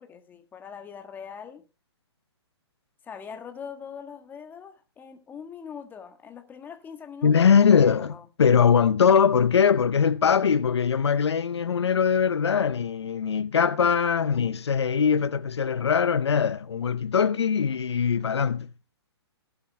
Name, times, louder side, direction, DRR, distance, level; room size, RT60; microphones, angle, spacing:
voice 1, 0.0-1.7 3.0-8.2, left 7 dB, 15° left, 1.5 m, -42 dB
voice 2, 7.2-18.7, left 7 dB, 75° left, 0.7 m, -21 dB
18.0 x 11.5 x 2.2 m
hypercardioid pair, 130°, 14 cm